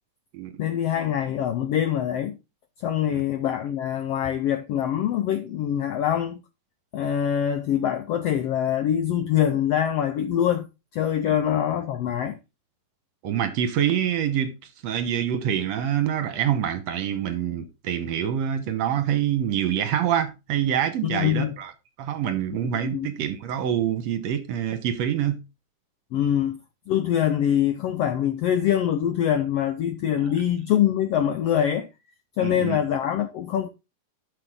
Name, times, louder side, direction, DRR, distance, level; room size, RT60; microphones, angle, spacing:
voice 1, 0.6-2.4 2.8-6.4 6.9-10.7 10.9-12.4 21.0-21.5 22.9-23.1 26.1-26.6 26.9-31.9 32.4-33.7, left 10 dB, 80° left, 1.4 m, -24 dB
voice 2, 13.2-14.6 14.8-21.7 22.0-25.4 32.4-32.8, right 9 dB, 65° right, 2.0 m, -26 dB
11.5 x 6.6 x 3.7 m
omnidirectional pair, 3.7 m